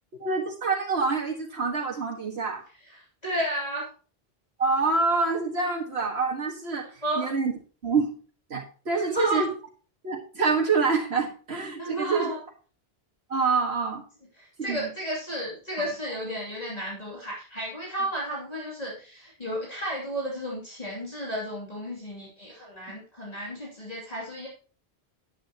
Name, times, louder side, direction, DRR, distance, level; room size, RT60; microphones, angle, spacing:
voice 1, 0.2-2.6 4.6-6.9 7.2-7.5 7.8-8.1 8.5-9.5 10.0-12.3 13.3-14.0 14.7-14.8, right 4 dB, 80° right, -2 dB, 2.0 m, -26 dB
voice 2, 2.8-3.9 7.0-7.3 8.9-9.5 11.8-12.4 14.4-24.5, right 1 dB, 40° left, -4 dB, 2.8 m, -32 dB
10.5 x 10.5 x 2.9 m, 0.39 s
omnidirectional pair, 1.1 m